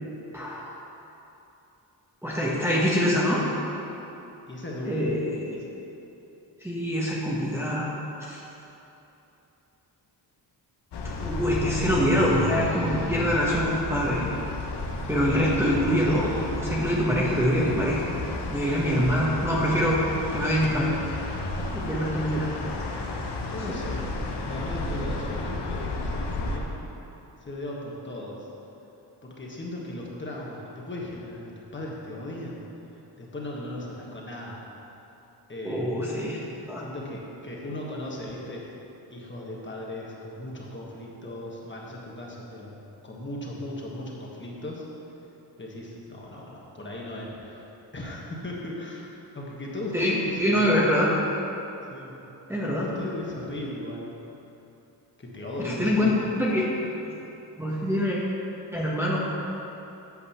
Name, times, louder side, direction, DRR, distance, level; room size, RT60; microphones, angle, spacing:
voice 1, 0.3-0.7 2.2-3.4 4.9-5.6 6.6-7.9 8.2-8.4 11.2-14.2 15.1-18.0 18.5-20.0 20.3-20.9 21.7-22.5 23.7-23.8 35.6-36.4 36.7-36.8 49.9-50.1 50.4-51.1 52.5-52.9 55.6-56.1 56.4-56.7 57.0-57.1 57.6-58.2 58.7-59.2, equal, 5° right, -6 dB, 1.1 m, -24 dB
voice 2, 4.5-5.1 15.3-15.6 23.4-26.8 27.4-28.5 29.2-32.7 33.2-34.6 35.5-36.1 36.8-38.6 39.1-42.7 43.0-44.9 45.6-49.1 49.3-51.0 51.9-52.1 52.8-54.1 55.2-56.5, left 1 dB, 25° left, -3 dB, 1.5 m, -37 dB
sound 1, 10.9-26.6, left 2 dB, 70° left, 1.0 m, -32 dB
8.4 x 5.4 x 7.2 m, 3.0 s
wide cardioid pair, 140°, 42 cm